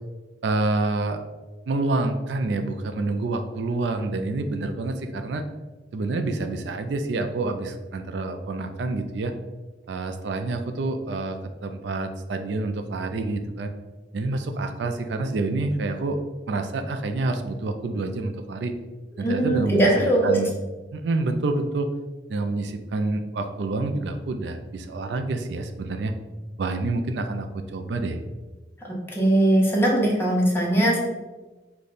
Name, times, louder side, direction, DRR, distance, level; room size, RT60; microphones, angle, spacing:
voice 1, 0.4-1.2 1.7-5.4 5.9-9.3 9.9-13.7 14.1-16.2 16.5-18.7 19.2-19.9 20.2-20.5 20.9-21.9 22.3-26.1 26.6-28.2, right 2 dB, 75° right, 7 dB, 0.4 m, -27 dB
voice 2, 19.2-20.4 29.1-31.0, right 1 dB, 15° left, -3 dB, 0.9 m, -20 dB
5.0 x 2.2 x 4.0 m, 1.2 s
head